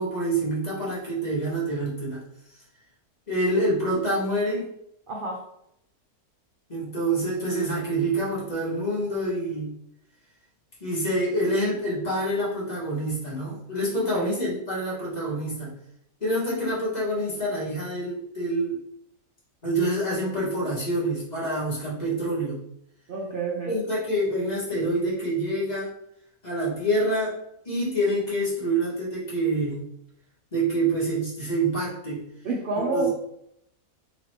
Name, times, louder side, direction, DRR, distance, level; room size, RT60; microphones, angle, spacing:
voice 1, 0.0-2.2 3.3-4.6 6.7-9.7 10.8-15.8 16.2-18.8 19.6-22.6 23.6-25.9 26.4-27.3 27.6-29.8 30.5-32.2 32.9-33.1, right 1 dB, 30° left, -7 dB, 1.5 m, -26 dB
voice 2, 5.1-5.4 14.1-14.3 23.1-23.8 32.4-33.1, right 3 dB, 55° right, -2 dB, 0.6 m, -28 dB
4.1 x 2.9 x 3.2 m, 0.77 s
omnidirectional pair, 1.6 m